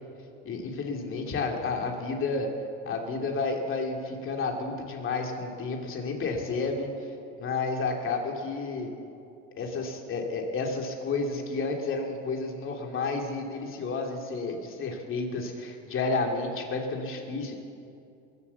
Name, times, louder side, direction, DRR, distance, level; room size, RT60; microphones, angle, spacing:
voice 1, 0.4-2.5 2.9-6.9 7.4-8.9 9.6-17.6, left 3 dB, 45° left, 2 dB, 2.7 m, -31 dB
22.0 x 8.3 x 7.1 m, 2.6 s
supercardioid pair, 110°, 30 cm